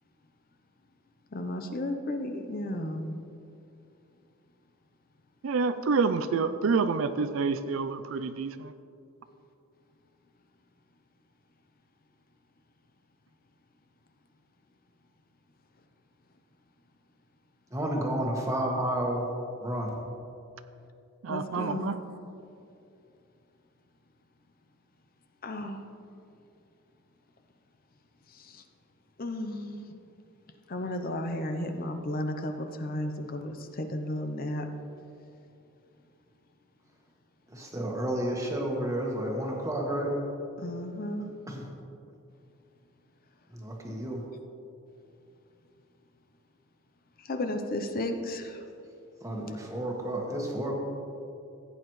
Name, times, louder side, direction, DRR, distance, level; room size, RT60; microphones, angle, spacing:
voice 1, 1.3-3.2 21.3-22.0 25.4-25.8 28.3-28.6 29.2-29.9 30.7-34.7 40.6-41.3 47.2-48.6, left 1 dB, 45° left, 6 dB, 0.7 m, -34 dB
voice 2, 5.4-8.7 21.2-21.9, right 4 dB, 70° right, 11 dB, 0.4 m, -28 dB
voice 3, 17.7-19.3 19.6-20.0 37.5-40.1 41.5-41.6 43.5-44.2 49.2-50.7, right 1 dB, 15° right, -1 dB, 1.4 m, -31 dB
15.5 x 8.8 x 3.1 m, 2.7 s
head